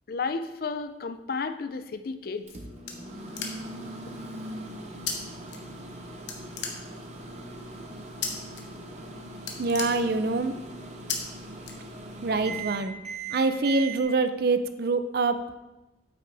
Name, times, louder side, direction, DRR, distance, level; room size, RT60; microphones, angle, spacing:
voice 1, 0.1-2.5, left 4 dB, 55° left, 9 dB, 0.5 m, -32 dB
sound 1, 2.2-3.9 5.1-5.2 5.5-6.0 6.3-7.2 8.2-8.6 8.9-9.1 9.4-10.5 11.1-11.2 11.6-12.3, left 6 dB, 85° left, 1.1 m, -35 dB
Microwave oven, 2.5-14.0, right 2 dB, 40° right, 0.9 m, -40 dB
voice 2, 9.6-10.5 12.2-13.0 13.3-15.6, right 3 dB, 60° right, 10 dB, 0.5 m, -25 dB
8.7 x 5.9 x 3.4 m, 1.0 s
head